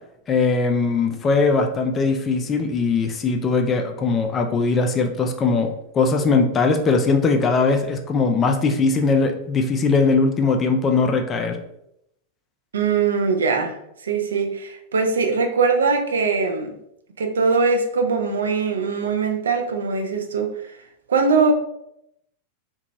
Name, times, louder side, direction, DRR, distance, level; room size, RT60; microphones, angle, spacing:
voice 1, 0.3-11.6, left 4 dB, 25° left, 4 dB, 0.3 m, -20 dB
voice 2, 12.7-13.8 14.0-16.7 17.2-20.8 21.1-21.5, right 4 dB, 65° right, 4 dB, 0.3 m, -21 dB
2.7 x 2.2 x 2.6 m, 0.78 s
figure-of-eight pair, 90°, 0 cm